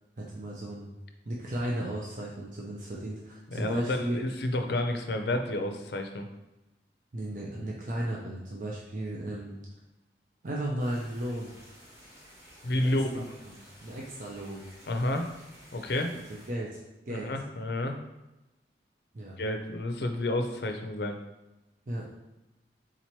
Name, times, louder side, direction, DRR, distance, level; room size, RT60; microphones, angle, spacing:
voice 1, 0.2-0.9 1.2-4.2 7.1-9.6 10.4-11.5 12.7-13.2 13.8-14.6 16.1-16.8 17.1-17.3 19.1-19.4 21.9-22.1, right 1 dB, 45° right, -3 dB, 0.5 m, -35 dB
voice 2, 3.5-6.3 12.6-13.2 14.9-15.3 15.7-16.1 17.1-18.0 19.4-21.2, left 1 dB, 70° left, 5 dB, 0.5 m, -30 dB
sound 1, 10.8-16.5, equal, 15° right, 1.3 m, -53 dB
3.8 x 2.9 x 4.4 m, 1.0 s
head